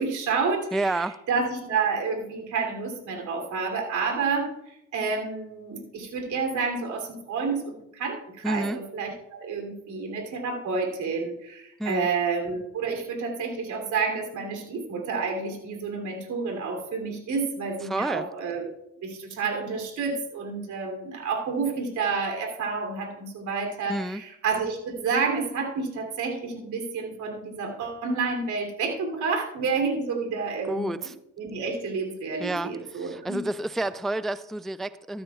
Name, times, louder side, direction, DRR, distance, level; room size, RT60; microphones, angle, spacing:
voice 1, 0.0-18.7 19.0-31.1 31.4-33.4, right 4 dB, 75° right, 2 dB, 3.0 m, -29 dB
voice 2, 0.7-1.2 8.4-8.8 11.8-12.1 17.8-18.3 23.9-24.2 30.7-31.1 32.4-35.2, right 2 dB, ahead, 14 dB, 0.3 m, -29 dB
14.0 x 12.0 x 2.3 m, 0.82 s
cardioid pair, 90°, 30 cm